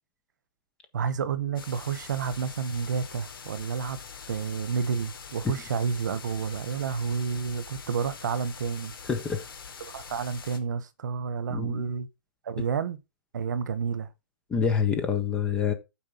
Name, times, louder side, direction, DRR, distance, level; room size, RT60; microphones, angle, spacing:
voice 1, 0.9-4.0 4.3-8.9 9.8-12.1 12.4-13.0 13.3-14.1, right 6 dB, 55° right, 1.2 m, -30 dB
sound 1, 1.6-10.6, left 6 dB, 80° left, 2.7 m, -44 dB
voice 2, 9.1-9.4 11.5-11.9 14.5-15.7, left 6 dB, 10° left, 0.7 m, -26 dB
8.8 x 4.8 x 5.5 m
hypercardioid pair, 175°, 12 cm